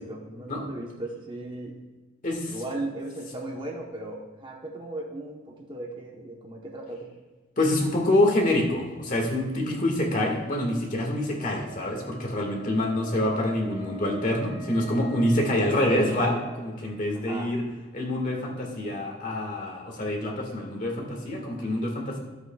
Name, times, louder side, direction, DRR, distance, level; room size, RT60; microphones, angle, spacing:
voice 1, 0.0-1.8 2.5-7.1 17.1-17.5, right 1 dB, 25° right, -1 dB, 1.0 m, -37 dB
voice 2, 2.2-2.6 7.6-17.6 17.9-22.2, left 1 dB, 40° left, 1 dB, 1.9 m, -26 dB
Wind instrument woodwind instrument, 11.3-16.6, right 1 dB, 65° right, 3.0 m, -47 dB
13.5 x 8.0 x 2.4 m, 1.3 s
head